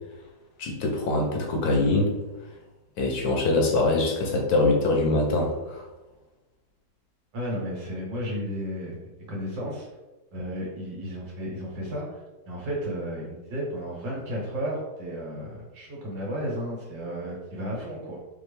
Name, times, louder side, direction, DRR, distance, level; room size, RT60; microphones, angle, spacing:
voice 1, 0.6-2.1 3.0-5.8, left 2 dB, 65° left, 1 dB, 1.2 m, -23 dB
voice 2, 7.3-9.9 10.3-18.2, equal, 85° right, -4 dB, 2.3 m, -33 dB
5.2 x 2.7 x 3.3 m, 1.1 s
omnidirectional pair, 2.0 m